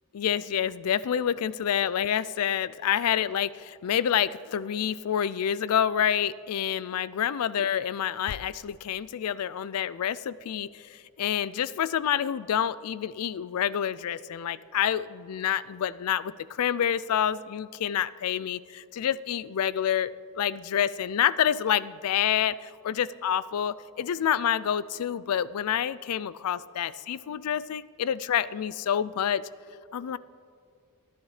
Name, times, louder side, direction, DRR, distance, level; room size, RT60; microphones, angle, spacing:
voice 1, 0.1-16.3 16.6-20.1 20.4-29.4 29.9-30.2, left 9 dB, 80° left, 18 dB, 0.4 m, -28 dB
29.0 x 10.5 x 3.2 m, 2.3 s
head